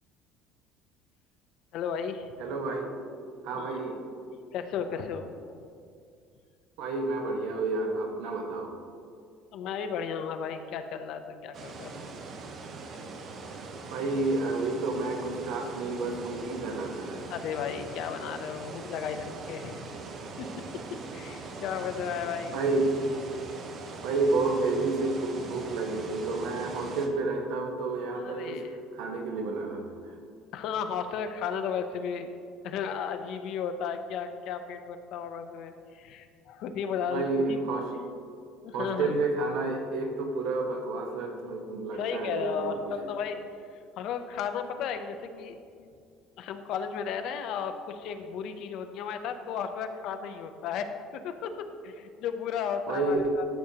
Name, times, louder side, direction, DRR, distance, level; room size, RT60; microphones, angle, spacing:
voice 1, 1.7-2.3 3.5-3.8 4.5-5.3 9.5-12.0 17.3-19.9 20.4-20.5 21.1-22.6 28.1-28.7 30.5-32.3 32.6-37.6 38.6-39.2 41.9-43.4 44.0-45.6 46.4-51.5 51.8-53.5, left 7 dB, 55° left, 7 dB, 0.6 m, -34 dB
voice 2, 2.4-3.0 3.4-4.0 6.8-8.7 13.9-17.3 22.5-23.0 24.0-28.6 28.9-30.1 37.1-37.9 38.7-43.1 52.9-53.4, right 3 dB, 70° right, 3 dB, 1.1 m, -30 dB
sound 1, 11.5-27.1, right 3 dB, 35° right, 0.7 m, -41 dB
13.5 x 6.4 x 2.8 m, 2.3 s
cardioid pair, 170°, 0 cm